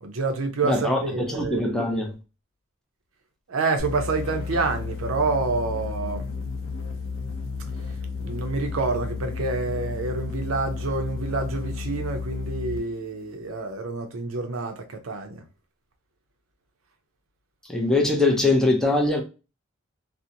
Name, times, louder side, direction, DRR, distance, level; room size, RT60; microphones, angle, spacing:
voice 1, 0.0-1.8 3.5-6.3 8.2-15.4, right 3 dB, 75° right, 0.5 m, -28 dB
voice 2, 0.6-2.1 17.7-19.2, left 2 dB, 5° left, 0.4 m, -22 dB
sound 1, 3.8-12.9, left 4 dB, 65° left, 0.5 m, -32 dB
2.5 x 2.0 x 2.7 m
head